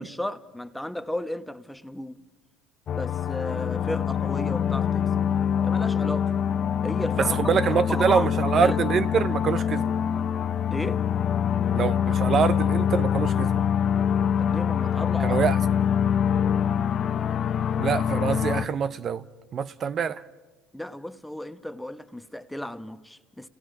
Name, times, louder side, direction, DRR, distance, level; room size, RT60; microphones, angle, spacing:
voice 1, 0.0-2.2 2.9-5.1 5.6-6.3 6.8-8.3 8.6-8.8 10.7-11.0 14.4-15.4 20.7-23.5, left 1 dB, 5° left, 1.0 m, -34 dB
sound 1, 2.9-18.7, left 8 dB, 50° left, 0.8 m, -25 dB
voice 2, 7.2-9.9 11.7-13.6 15.2-15.6 17.8-19.2 19.5-20.2, right 7 dB, 45° right, 0.6 m, -25 dB
30.0 x 18.5 x 6.2 m
supercardioid pair, 80°, 0 cm